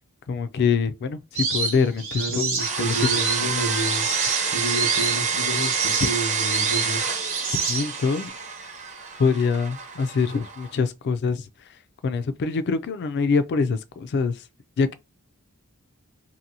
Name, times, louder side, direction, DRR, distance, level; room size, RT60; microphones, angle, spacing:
voice 1, 0.3-2.2 2.8-3.2 7.7-8.3 9.2-11.5 12.0-14.4 14.8-14.9, left 5 dB, 50° left, 0.3 m, -24 dB
sound 1, 1.3-8.2, right 4 dB, 60° right, 1.0 m, -28 dB
voice 2, 2.2-4.0 4.4-7.1, right 1 dB, 80° left, 1.1 m, -30 dB
sound 2, 2.6-10.7, right 5 dB, 30° right, 0.6 m, -28 dB
2.8 x 2.6 x 2.6 m
head